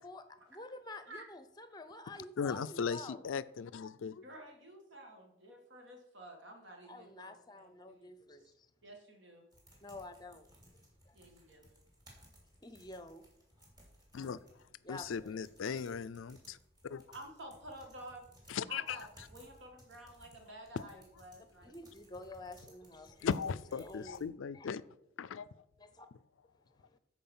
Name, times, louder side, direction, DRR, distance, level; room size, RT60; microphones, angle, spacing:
voice 1, 0.0-3.2 6.8-8.7 9.8-10.5 11.1-11.2 12.6-13.2 14.8-15.4 21.6-23.3 23.8-24.2 24.5-24.7 25.8-26.1 26.8-26.9, left 2 dB, 20° left, 0.7 m, -49 dB
voice 2, 0.9-1.3 4.1-8.1 8.4-8.5 8.8-9.5 11.1-11.7 17.1-18.2 18.7-21.8, right 1 dB, 65° right, 2.2 m, -51 dB
voice 3, 2.4-4.2 14.1-14.4 14.9-16.6 16.8-17.0 18.5-19.0 20.8-20.9 23.2-24.8 25.2-25.5, left 6 dB, 80° left, 0.4 m, -37 dB
sound 1, 9.5-24.3, equal, 20° right, 2.7 m, -62 dB
12.5 x 4.7 x 5.5 m
head